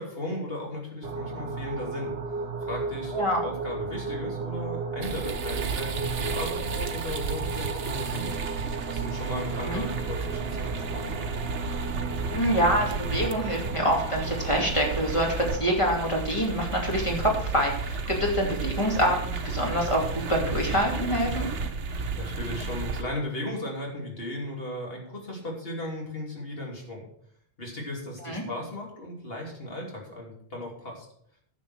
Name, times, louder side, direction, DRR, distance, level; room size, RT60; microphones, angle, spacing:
voice 1, 0.0-2.1 2.6-8.3 8.9-11.1 22.2-27.1 27.6-31.1, left 1 dB, 55° left, -1 dB, 3.4 m, -36 dB
sound 1, 1.0-16.0, right 4 dB, 60° right, 1.3 m, -35 dB
sound 2, 5.0-23.0, right 4 dB, 80° right, 1.3 m, -33 dB
voice 2, 12.3-20.0 20.3-21.5 28.2-28.4, equal, 25° left, -1 dB, 2.8 m, -26 dB
10.5 x 7.5 x 6.3 m, 0.67 s
omnidirectional pair, 1.2 m